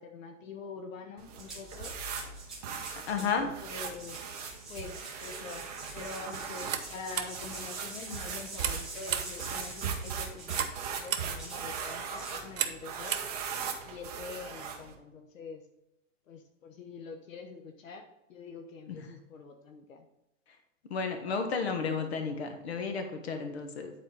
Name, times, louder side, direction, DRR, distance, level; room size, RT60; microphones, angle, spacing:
voice 1, 0.0-1.9 3.2-4.3 4.7-10.7 11.0-13.2 13.8-15.6 16.3-18.0 18.3-20.0, left 5 dB, 80° left, 5 dB, 1.0 m, -45 dB
sound 1, 1.2-14.9, right 6 dB, 30° right, 0.8 m, -39 dB
sound 2, 1.4-3.4 3.8-10.8 11.4-11.6 12.1-12.4 13.0-13.2, right 3 dB, ahead, 0.8 m, -45 dB
voice 2, 3.1-3.5 18.9-19.1 20.9-23.9, left 5 dB, 55° left, 5 dB, 1.3 m, -32 dB
sound 3, 6.5-13.9, right 8 dB, 85° right, 1.1 m, -38 dB
9.7 x 4.2 x 3.9 m, 0.91 s
hypercardioid pair, 175°, 39 cm